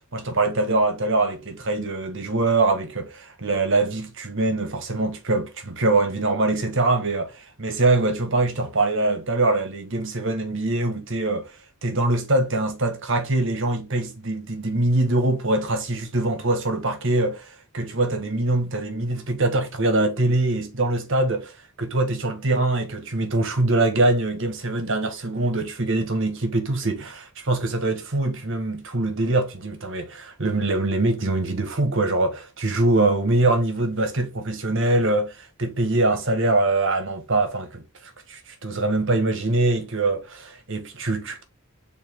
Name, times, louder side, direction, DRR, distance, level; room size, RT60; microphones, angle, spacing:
voice 1, 0.0-11.6 11.8-41.4, right 2 dB, 60° right, 1.7 m, -23 dB
6.8 x 4.0 x 3.8 m
head